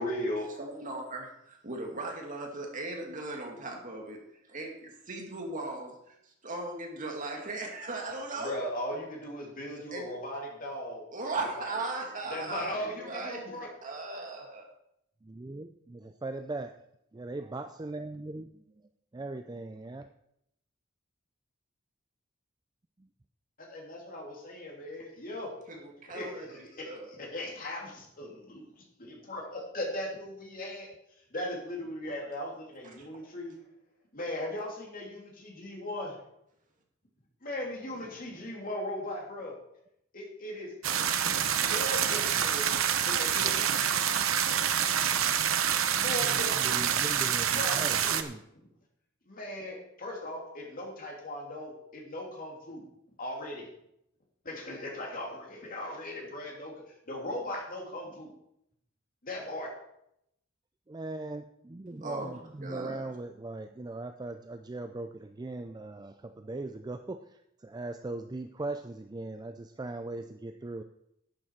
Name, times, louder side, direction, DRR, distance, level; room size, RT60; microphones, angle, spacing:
voice 1, 0.0-0.5 8.4-11.0 11.6-11.7 12.3-13.7 23.6-25.5 26.1-28.7 29.0-30.9 31.3-33.5 34.1-36.1 37.4-39.5 40.1-40.7 41.5-42.7 43.0-43.7 45.9-46.7 47.5-48.2 49.3-52.9 53.2-53.6 54.4-56.7 57.1-58.3 59.2-59.8, left 1 dB, 45° left, -1 dB, 2.9 m, -38 dB
voice 2, 0.6-4.2 4.5-6.1 6.4-8.7 9.9-10.1 11.1-14.7 25.7-27.1 32.8-33.1 62.0-63.2, right 2 dB, 40° right, 1 dB, 2.3 m, -38 dB
voice 3, 15.2-16.8 17.1-18.6 19.1-20.1 46.2-48.4 60.9-67.2 67.6-70.8, right 2 dB, 20° right, 8 dB, 0.4 m, -39 dB
sound 1, 40.8-48.2, right 9 dB, 85° right, 0.8 m, -27 dB
11.5 x 9.0 x 4.7 m, 0.78 s
head